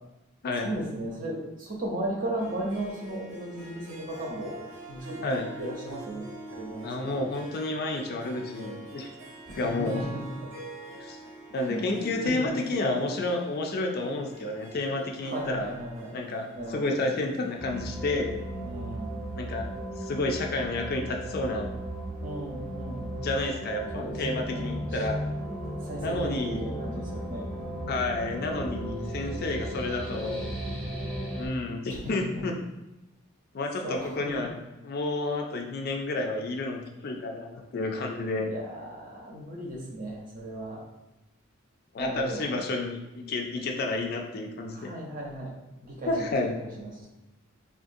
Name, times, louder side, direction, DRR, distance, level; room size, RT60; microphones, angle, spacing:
voice 1, 0.6-4.6 4.9-5.2 5.6-7.3 9.4-10.5 11.7-11.9 12.2-12.3 15.2-16.2 16.5-16.9 18.6-19.2 22.2-23.1 23.9-25.0 25.8-27.5 31.9-32.0 32.3-32.4 33.8-34.3 38.4-40.8 42.0-42.4 44.7-45.5 45.8-47.1, right 1 dB, 40° right, -2 dB, 0.7 m, -36 dB
Harp, 2.4-19.2, right 2 dB, 85° right, 1.0 m, -45 dB
voice 2, 6.8-9.1 9.6-10.0 11.0-11.2 11.5-15.7 16.1-18.4 19.3-19.7 20.0-21.7 23.1-25.3 26.0-26.7 27.9-30.5 31.4-32.5 33.5-34.6 34.8-38.5 41.9-44.9 46.1-46.5, left 2 dB, 45° left, 2 dB, 0.3 m, -30 dB
sound 1, 17.6-31.5, right 1 dB, 5° left, 0.6 m, -35 dB
3.6 x 2.4 x 2.6 m, 0.99 s
head